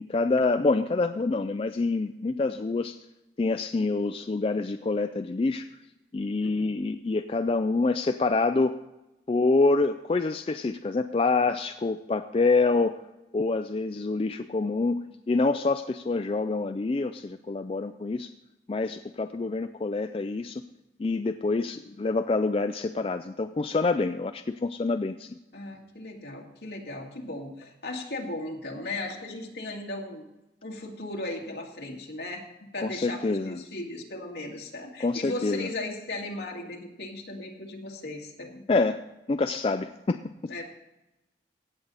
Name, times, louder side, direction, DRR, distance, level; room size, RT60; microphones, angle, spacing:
voice 1, 0.0-3.0 3.4-5.7 6.1-8.8 9.3-13.0 13.3-18.3 18.7-20.6 21.0-25.4 32.8-33.6 35.0-35.7 38.7-40.5, left 3 dB, 30° left, 8 dB, 0.3 m, -26 dB
voice 2, 25.5-30.3 30.6-32.5 32.7-38.6 40.5-40.6, left 2 dB, 70° left, 0 dB, 2.1 m, -37 dB
16.5 x 7.7 x 4.0 m, 0.96 s
head